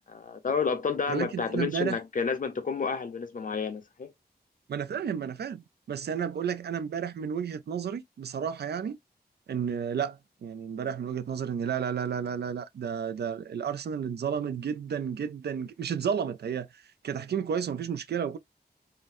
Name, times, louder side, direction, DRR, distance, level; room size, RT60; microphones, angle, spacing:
voice 1, 0.1-4.1, left 5 dB, 55° left, 0.6 m, -30 dB
voice 2, 1.1-2.0 4.7-9.0 9.5-16.7 17.0-18.4, right 7 dB, 75° right, 0.4 m, -32 dB
3.8 x 2.1 x 2.5 m
wide cardioid pair, 90°, 17 cm